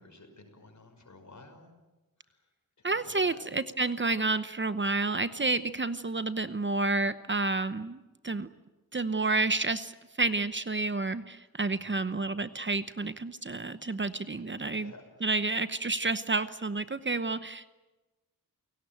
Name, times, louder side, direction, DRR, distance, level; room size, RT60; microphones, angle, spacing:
voice 1, 0.0-1.7 2.2-2.5 2.8-3.5 11.8-12.2 14.5-15.3, left 2 dB, 55° left, 6 dB, 5.7 m, -53 dB
voice 2, 2.8-8.5 8.9-9.9 10.2-14.9 15.2-17.7, right 3 dB, 35° right, 12 dB, 0.9 m, -30 dB
29.0 x 18.0 x 9.1 m, 1.1 s
wide cardioid pair, 100°, 34 cm